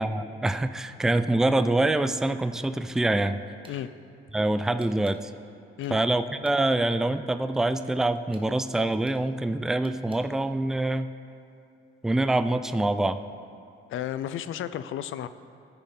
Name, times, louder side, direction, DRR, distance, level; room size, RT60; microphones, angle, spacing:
voice 1, 0.0-3.4 4.3-5.3 5.9-11.1 12.0-13.2, right 2 dB, ahead, 10 dB, 0.3 m, -25 dB
sound 1, 2.9-3.2 3.6-3.8 4.8-5.2 5.8-6.8 7.7-8.5 9.0-9.2 9.8-10.2, right 3 dB, 25° right, 1.1 m, -55 dB
voice 2, 13.9-15.3, left 11 dB, 70° left, 13 dB, 0.4 m, -32 dB
13.5 x 5.3 x 3.7 m, 2.6 s
cardioid pair, 75°, 21 cm